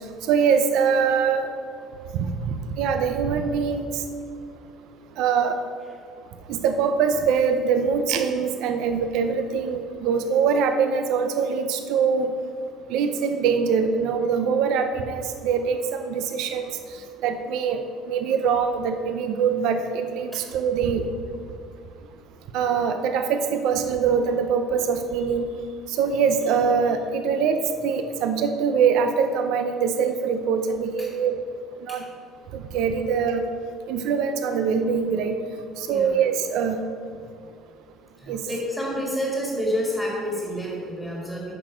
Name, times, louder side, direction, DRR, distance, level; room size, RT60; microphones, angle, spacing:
voice 1, 0.3-1.5 2.1-4.0 5.2-5.6 6.5-12.3 12.9-16.7 17.2-17.8 18.1-21.0 22.5-25.5 25.9-31.3 31.8-32.0 32.5-33.4 33.9-35.3 35.8-36.8 38.3-38.4, right 6 dB, 70° right, 7 dB, 0.6 m, -23 dB
voice 2, 35.9-36.2 38.2-41.6, equal, ahead, -4 dB, 1.8 m, -29 dB
9.2 x 6.0 x 5.0 m, 2.2 s
cardioid pair, 145°, 0 cm